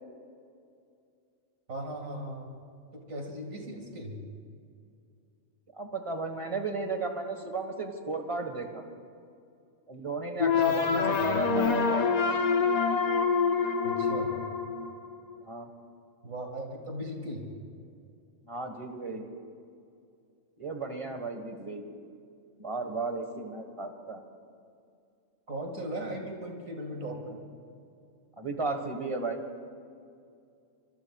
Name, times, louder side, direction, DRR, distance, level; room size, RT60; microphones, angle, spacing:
voice 1, 1.7-2.5 2.9-4.2 10.4-11.0 13.8-14.3 16.2-17.4 25.5-27.4, right 1 dB, 70° right, 1 dB, 2.6 m, -38 dB
voice 2, 5.7-8.8 9.9-12.1 15.5-15.7 18.5-19.2 20.6-21.8 22.6-24.2 28.4-29.4, right 3 dB, 25° right, 5 dB, 1.5 m, -34 dB
sound 1, 10.4-15.4, left 5 dB, 45° left, 0.6 m, -26 dB
25.0 x 24.0 x 2.4 m, 2.4 s
omnidirectional pair, 1.5 m